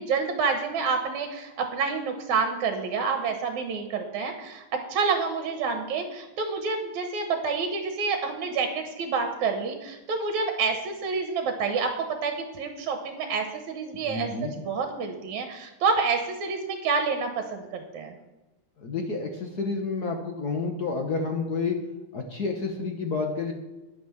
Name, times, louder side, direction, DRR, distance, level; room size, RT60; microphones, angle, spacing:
voice 1, 0.0-14.3 14.6-18.2, right 5 dB, 70° right, 5 dB, 2.4 m, -28 dB
voice 2, 14.1-14.5 18.8-21.8 22.1-23.5, left 4 dB, 65° left, 3 dB, 0.9 m, -29 dB
10.5 x 9.5 x 7.1 m, 1.1 s
omnidirectional pair, 3.5 m